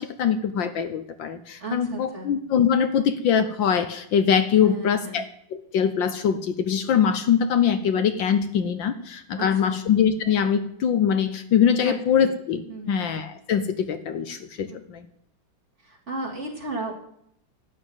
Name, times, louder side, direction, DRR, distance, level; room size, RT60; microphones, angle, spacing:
voice 1, 0.0-5.2 5.5-12.6 12.9-15.0, left 7 dB, 70° left, 9 dB, 1.6 m, -23 dB
voice 2, 1.6-2.3 4.6-5.2 9.4-9.8 11.8-12.3 12.7-13.0 14.7-14.8 15.8-16.9, right 2 dB, 35° right, -1 dB, 3.3 m, -34 dB
12.0 x 8.9 x 8.8 m, 0.72 s
omnidirectional pair, 2.3 m